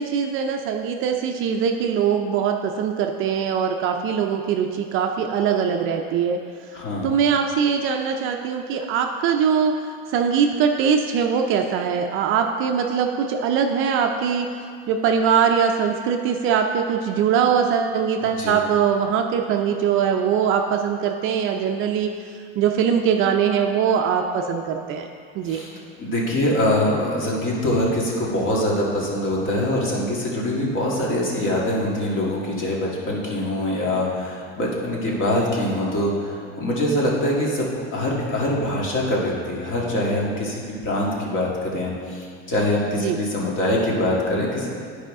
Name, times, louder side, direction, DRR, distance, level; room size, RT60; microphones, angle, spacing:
voice 1, 0.0-6.4 7.0-9.7 10.1-14.5 14.9-25.1 25.3-25.6 42.9-43.2, right 7 dB, 40° right, 4 dB, 0.4 m, -22 dB
voice 2, 6.7-7.1 18.2-18.5 25.5-25.7 26.0-44.7, left 1 dB, 40° left, -3 dB, 1.8 m, -24 dB
10.0 x 4.9 x 3.6 m, 2.2 s
supercardioid pair, 135°, 32 cm